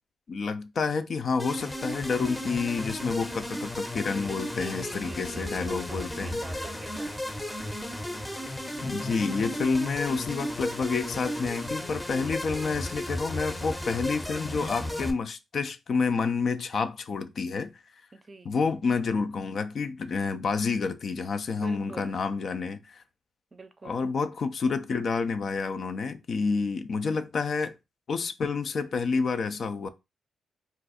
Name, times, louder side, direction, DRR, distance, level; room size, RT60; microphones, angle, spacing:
voice 1, 0.3-6.4 8.8-17.7 18.4-23.0 23.8-27.8 28.1-29.9, left 4 dB, 60° left, 0.4 m, -29 dB
sound 1, 1.4-15.1, left 1 dB, 15° left, 0.7 m, -34 dB
voice 2, 4.4-7.4 18.1-18.5 21.6-22.2 23.5-24.1, right 3 dB, 40° right, 0.5 m, -46 dB
2.5 x 2.3 x 4.0 m
supercardioid pair, 60°, 0 cm